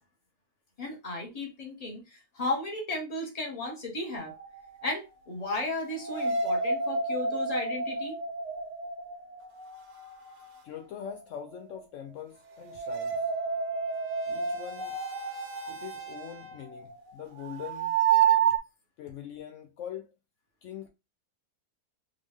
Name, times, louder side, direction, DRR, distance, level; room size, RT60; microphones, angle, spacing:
voice 1, 0.8-4.3 4.8-8.2, left 2 dB, 25° left, 1.3 m, -34 dB
sound 1, 4.2-4.9 6.0-10.6 12.6-18.6, right 6 dB, 80° right, 1.4 m, -30 dB
voice 2, 10.6-13.3 14.3-15.0 15.7-18.0 19.0-20.1 20.6-20.9, left 9 dB, 70° left, 0.7 m, -42 dB
Trumpet, 12.3-16.7, right 3 dB, 40° right, 1.0 m, -52 dB
3.8 x 3.3 x 3.5 m
omnidirectional pair, 1.8 m